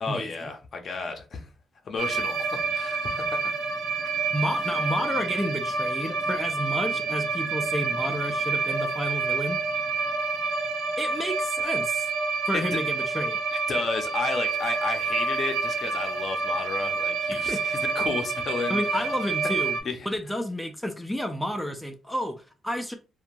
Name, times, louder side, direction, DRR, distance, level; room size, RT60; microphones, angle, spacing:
voice 1, 0.0-1.4 1.8-3.5 12.7-12.8 13.5-18.8 19.8-20.0, left 4 dB, 50° left, 0.6 m, -32 dB
sound 1, 2.0-19.8, right 4 dB, 75° right, 0.5 m, -28 dB
voice 2, 4.3-9.6 11.0-12.1 12.5-13.4 17.3-17.6 18.7-19.8 20.1-22.9, equal, ahead, 0.4 m, -31 dB
2.8 x 2.2 x 2.5 m
cardioid pair, 105°, 0 cm